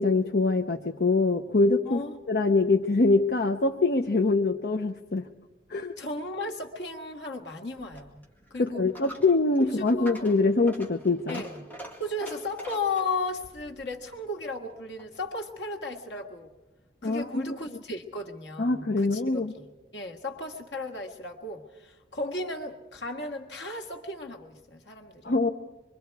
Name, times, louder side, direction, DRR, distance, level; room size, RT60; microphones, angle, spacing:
voice 1, 0.0-2.0 2.3-5.3 5.7-5.9 8.6-11.4 17.0-17.5 18.6-19.5 25.2-25.5, left 3 dB, 65° left, 3 dB, 0.7 m, -24 dB
voice 2, 1.8-2.1 6.0-8.2 8.5-8.9 9.6-10.3 11.3-11.7 12.0-16.5 17.0-19.7 19.9-25.3, left 2 dB, 90° left, 3 dB, 1.8 m, -35 dB
Coin (dropping), 7.8-15.3, right 1 dB, 10° left, 2.1 m, -46 dB
25.5 x 23.5 x 4.7 m, 1.1 s
head